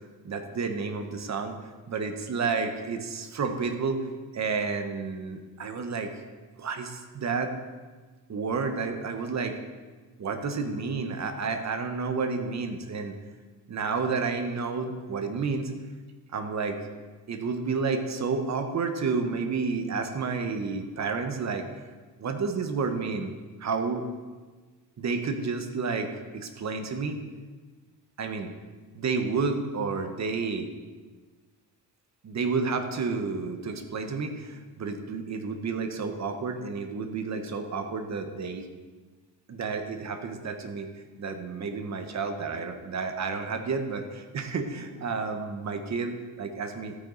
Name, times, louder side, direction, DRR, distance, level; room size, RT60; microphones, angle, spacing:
voice 1, 0.2-1.6 1.9-6.1 6.6-7.5 8.3-9.6 10.2-13.2 13.7-15.7 16.3-16.8 17.3-21.7 22.2-23.3 23.6-24.1 25.0-27.2 28.2-28.5 28.9-30.7 32.2-38.7 39.5-47.0, right 4 dB, 40° right, 6 dB, 1.2 m, -30 dB
13.5 x 9.0 x 4.0 m, 1.4 s
cardioid pair, 135°, 40 cm